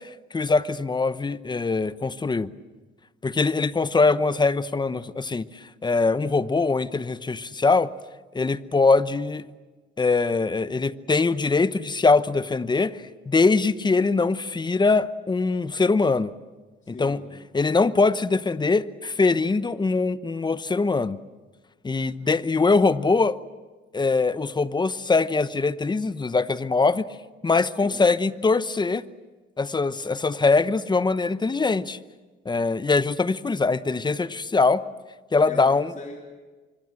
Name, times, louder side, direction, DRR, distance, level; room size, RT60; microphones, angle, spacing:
voice 1, 0.0-2.5 3.2-5.5 5.8-7.9 8.3-9.4 10.0-16.3 16.9-17.2 17.5-21.2 21.8-23.4 23.9-27.1 27.4-29.0 29.6-32.0 32.4-34.8 35.3-35.9, left 3 dB, 20° left, 14 dB, 0.9 m, -22 dB
voice 2, 16.8-17.3 27.8-28.1 35.5-36.2, left 3 dB, 40° left, 0 dB, 3.7 m, -39 dB
25.5 x 24.0 x 7.7 m, 1.3 s
cardioid pair, 90°, 20 cm